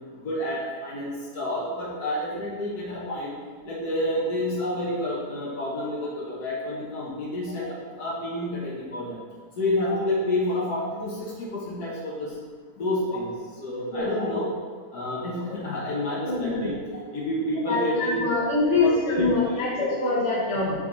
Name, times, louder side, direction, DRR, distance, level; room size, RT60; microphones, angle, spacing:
voice 1, 0.2-3.3 3.7-9.2 9.6-12.3 12.8-13.3 13.6-14.5 14.9-16.8 17.1-18.3 18.8-19.3 19.5-20.0 20.7-20.8, left 1 dB, 90° left, -5 dB, 1.9 m, -29 dB
voice 2, 13.9-14.4 16.2-16.7 17.6-20.7, left 3 dB, 50° left, -6 dB, 1.9 m, -25 dB
5.6 x 5.2 x 4.1 m, 1.5 s
omnidirectional pair, 1.6 m